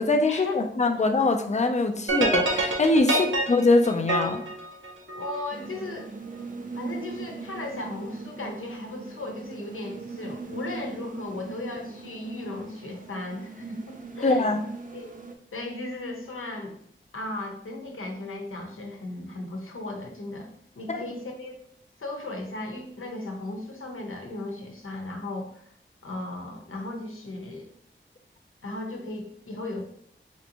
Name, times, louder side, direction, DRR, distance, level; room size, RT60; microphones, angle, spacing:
voice 1, 0.0-4.4 14.2-14.6 20.9-21.0, left 2 dB, 35° left, 5 dB, 0.4 m, -23 dB
sound 1, 2.1-5.5, right 2 dB, 75° right, 0.7 m, -27 dB
voice 2, 5.1-6.1 6.7-14.5 14.9-15.1 15.5-16.8 17.1-20.5 20.8-21.5 22.0-25.7 26.0-27.7 28.6-29.8, left 2 dB, 85° left, 2 dB, 0.7 m, -36 dB
sound 2, 5.5-15.4, right 4 dB, 40° right, 0.5 m, -40 dB
4.3 x 2.6 x 2.8 m, 0.66 s
wide cardioid pair, 70°, 21 cm